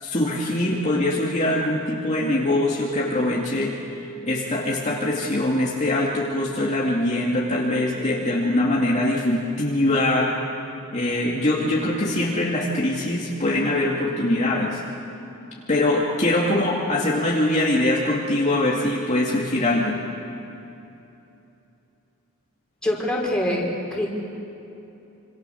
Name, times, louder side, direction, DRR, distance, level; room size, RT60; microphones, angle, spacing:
voice 1, 0.0-3.7 4.2-10.3 10.9-14.8 15.7-20.0, left 1 dB, 35° left, -4 dB, 2.5 m, -23 dB
voice 2, 22.8-24.1, left 1 dB, 5° left, -3 dB, 5.3 m, -24 dB
27.0 x 27.0 x 7.1 m, 2.8 s
head